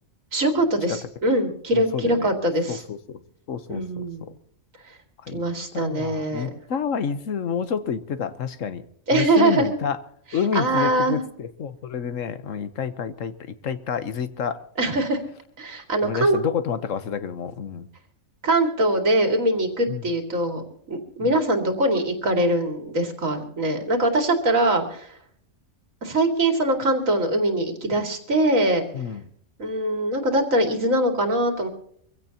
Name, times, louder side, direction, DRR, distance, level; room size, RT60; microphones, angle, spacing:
voice 1, 0.3-2.8 3.7-4.2 5.3-6.5 9.1-9.7 10.5-11.2 14.8-15.2 15.6-16.4 18.4-25.1 26.0-28.8 29.6-31.7, right 1 dB, 75° right, 4 dB, 2.7 m, -22 dB
voice 2, 1.7-2.3 2.7-3.2 3.5-4.4 5.2-5.4 5.7-8.8 9.1-10.0 10.3-14.6 16.0-17.9 19.9-20.0 21.2-21.3 28.9-29.2, left 7 dB, 70° left, 12 dB, 1.3 m, -29 dB
24.0 x 16.0 x 2.9 m, 0.65 s
omnidirectional pair, 1.4 m